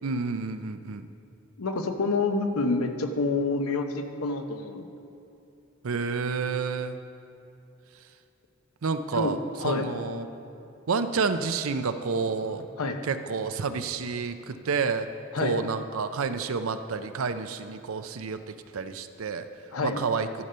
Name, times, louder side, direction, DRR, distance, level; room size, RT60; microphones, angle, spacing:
voice 1, 0.0-1.1 5.8-7.0 8.8-9.4 9.6-10.3 10.9-12.7 13.0-15.1 15.4-19.5 19.8-20.3, right 5 dB, 75° right, 10 dB, 0.5 m, -29 dB
voice 2, 1.6-4.8 9.1-9.3 9.6-9.9 12.8-13.0 15.3-15.6 19.7-20.0, left 3 dB, 90° left, 6 dB, 0.8 m, -27 dB
12.5 x 6.7 x 5.6 m, 2.7 s
head